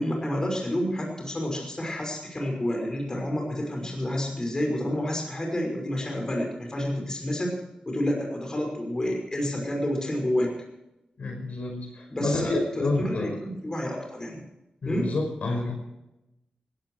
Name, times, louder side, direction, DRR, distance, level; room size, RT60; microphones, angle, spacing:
voice 1, 0.0-7.5 7.9-10.5 12.1-14.4 14.9-15.1, left 1 dB, 25° left, 1 dB, 5.7 m, -29 dB
voice 2, 11.2-13.4 14.8-15.7, left 2 dB, 65° left, 2 dB, 5.6 m, -28 dB
17.5 x 16.5 x 4.7 m, 0.91 s
wide cardioid pair, 105°, 3 cm